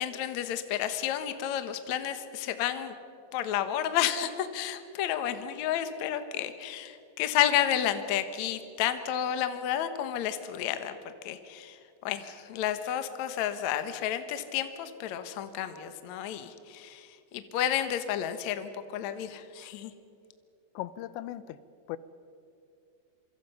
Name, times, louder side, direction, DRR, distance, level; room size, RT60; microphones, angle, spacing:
voice 1, 0.0-3.0 3.3-19.9, left 10 dB, 65° left, 9 dB, 1.8 m, -31 dB
voice 2, 20.8-21.6 21.9-22.0, left 14 dB, 85° left, 15 dB, 3.0 m, -37 dB
27.0 x 24.5 x 5.6 m, 2.6 s
omnidirectional pair, 5.0 m